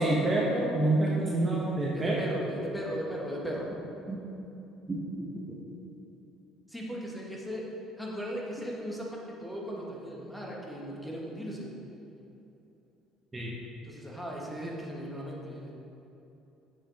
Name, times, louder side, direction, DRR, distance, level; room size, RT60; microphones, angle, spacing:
voice 1, 0.0-2.1 4.1-4.2 4.9-5.0 5.7-5.8 13.3-13.5, right 2 dB, 25° right, -4 dB, 1.3 m, -27 dB
voice 2, 1.9-3.7 6.7-11.7 13.8-15.7, equal, 5° left, -3 dB, 2.0 m, -37 dB
7.5 x 7.1 x 4.3 m, 2.9 s
hypercardioid pair, 60°, 0 cm